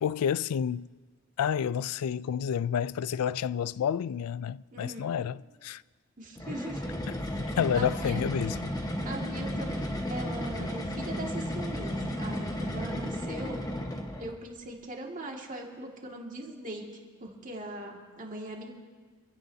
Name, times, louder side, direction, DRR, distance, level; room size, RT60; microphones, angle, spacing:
voice 1, 0.0-0.9 1.4-5.8 7.6-8.7, left 8 dB, 90° left, 0.3 m, -30 dB
voice 2, 4.7-5.3 6.2-6.9 7.7-8.3 9.0-13.6 14.2-16.8 17.2-18.7, right 1 dB, 35° right, 2.1 m, -40 dB
sound 1, 6.4-14.4, equal, 15° left, 1.1 m, -34 dB
26.5 x 16.5 x 2.8 m
head